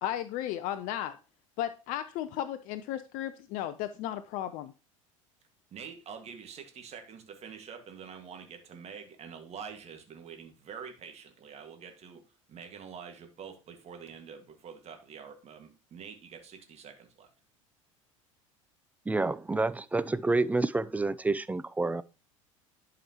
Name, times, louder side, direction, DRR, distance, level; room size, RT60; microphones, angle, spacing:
voice 1, 0.0-1.2 1.6-4.7, left 12 dB, 55° left, 0.6 m, -34 dB
voice 2, 5.7-12.2 12.5-17.3, right 7 dB, 40° right, 1.8 m, -46 dB
voice 3, 19.1-22.0, right 3 dB, 10° right, 0.4 m, -28 dB
11.0 x 4.9 x 2.9 m
hypercardioid pair, 75°, 17 cm